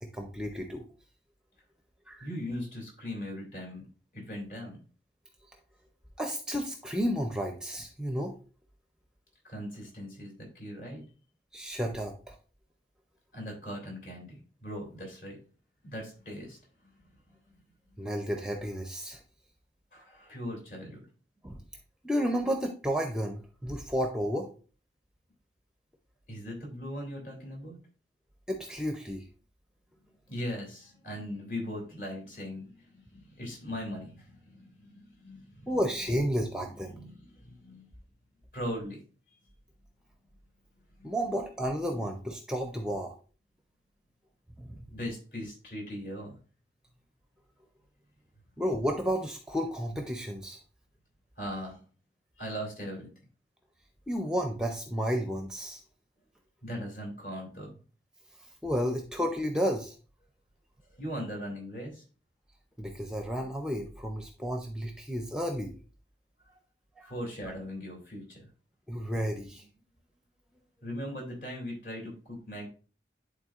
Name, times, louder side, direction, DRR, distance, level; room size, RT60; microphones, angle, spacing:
voice 1, 0.0-0.8 2.1-2.3 6.2-8.3 11.5-12.4 18.0-19.2 21.4-21.6 22.0-24.5 28.5-29.2 35.7-37.0 41.0-43.1 44.6-44.9 48.6-50.6 54.1-55.8 58.6-59.9 62.8-65.7 67.0-67.1 68.9-69.6, equal, 5° right, 4 dB, 0.5 m, -32 dB
voice 2, 2.2-3.9 4.1-4.8 9.4-11.0 13.3-15.4 15.8-16.6 19.9-21.0 26.3-27.8 30.3-35.7 36.9-37.9 38.5-39.0 41.0-41.2 41.9-42.0 44.8-46.4 51.4-51.8 52.4-53.1 56.6-57.7 61.0-62.0 66.5-66.6 67.0-68.5 70.8-72.7, equal, 50° left, -1 dB, 2.9 m, -39 dB
11.0 x 3.8 x 2.4 m, 0.38 s
head